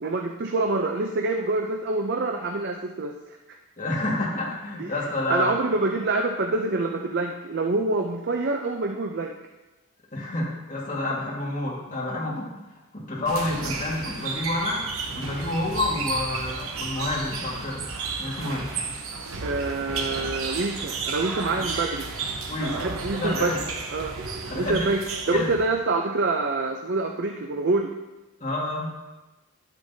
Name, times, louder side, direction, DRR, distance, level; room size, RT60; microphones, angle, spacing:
voice 1, 0.0-3.4 4.8-4.9 5.3-9.3 19.4-22.1 22.7-23.6 23.9-24.1 24.5-27.9, right 3 dB, 50° right, 3 dB, 0.5 m, -26 dB
voice 2, 3.8-5.5 10.1-12.5 12.9-14.8 15.1-17.8 18.2-18.7 21.5-21.6 22.5-23.6 24.5-24.9 25.3-25.5 28.4-28.9, left 2 dB, 35° left, -4 dB, 1.7 m, -29 dB
sound 1, 13.3-25.7, right 4 dB, 70° right, 0.9 m, -33 dB
10.5 x 8.1 x 2.7 m, 1.1 s
head